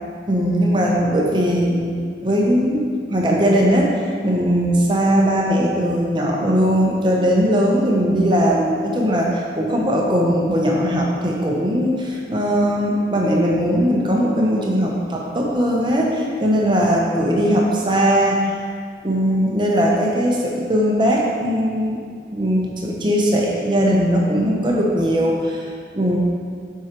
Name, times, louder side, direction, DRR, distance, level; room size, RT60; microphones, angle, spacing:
voice 1, 0.3-2.0 2.2-18.7 19.0-22.0 22.3-26.2, equal, 25° right, -2 dB, 0.7 m, -19 dB
7.7 x 4.7 x 2.9 m, 2.1 s
head